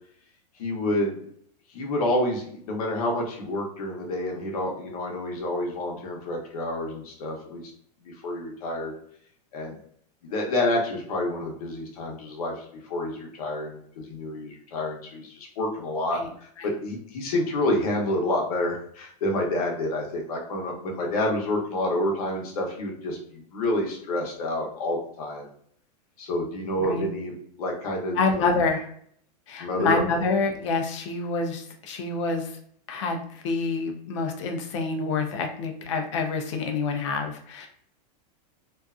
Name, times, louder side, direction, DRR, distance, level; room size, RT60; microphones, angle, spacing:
voice 1, 0.6-1.1 1.7-7.6 8.0-8.9 9.5-9.8 10.2-12.5 12.9-25.5 26.2-28.5 29.6-30.0, left 1 dB, 60° left, 0 dB, 0.8 m, -28 dB
voice 2, 28.1-28.9 29.5-32.6 32.9-37.7, left 4 dB, 45° left, 4 dB, 0.5 m, -27 dB
2.5 x 2.3 x 2.3 m, 0.63 s
supercardioid pair, 175°, 21 cm